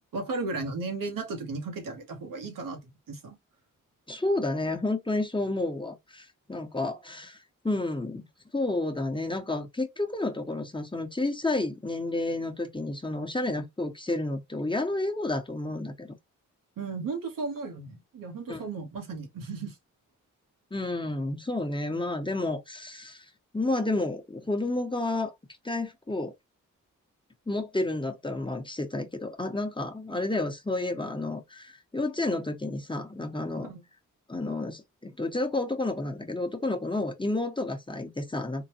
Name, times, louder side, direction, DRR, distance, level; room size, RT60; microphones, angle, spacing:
voice 1, 0.0-2.8 3.1-3.4 16.8-19.8 33.6-33.8, right 3 dB, 80° right, 1.0 m, -35 dB
voice 2, 4.1-7.4 7.6-8.3 8.5-16.1 18.5-18.6 20.7-23.2 23.5-25.3 25.6-26.3 27.5-33.7 34.3-38.7, left 2 dB, 15° left, 0.9 m, -30 dB
3.8 x 2.2 x 2.8 m
cardioid pair, 50°, 32 cm